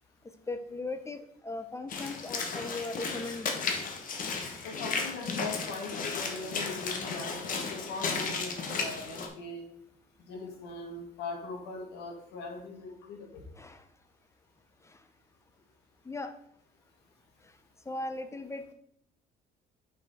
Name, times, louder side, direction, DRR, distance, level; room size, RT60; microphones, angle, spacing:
voice 1, 0.5-3.5 13.6-13.8 16.1-16.3 17.9-18.7, left 2 dB, 15° left, 10 dB, 0.6 m, -38 dB
Walk footsteps / Splash splatter, 1.9-9.3, left 4 dB, 55° left, 1.3 m, -34 dB
voice 2, 4.6-9.6 10.3-13.4, left 3 dB, 85° left, 1 dB, 2.0 m, -40 dB
6.3 x 5.7 x 4.2 m, 0.76 s
cardioid pair, 110°, 17 cm